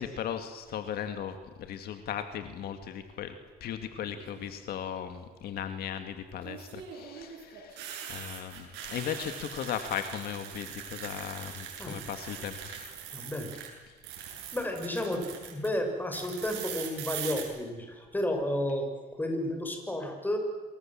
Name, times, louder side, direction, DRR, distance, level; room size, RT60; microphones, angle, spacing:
voice 1, 0.0-3.3 3.6-13.0, left 9 dB, 65° left, 8 dB, 2.1 m, -37 dB
sound 1, 4.1-4.5 6.4-13.7 14.0-15.7 16.1-17.4, right 8 dB, 85° right, 7.9 m, -42 dB
voice 2, 13.1-13.5 14.5-18.9 19.2-20.4, left 1 dB, 10° left, 4 dB, 6.5 m, -32 dB
28.0 x 24.0 x 7.6 m, 1.4 s
cardioid pair, 110°, 17 cm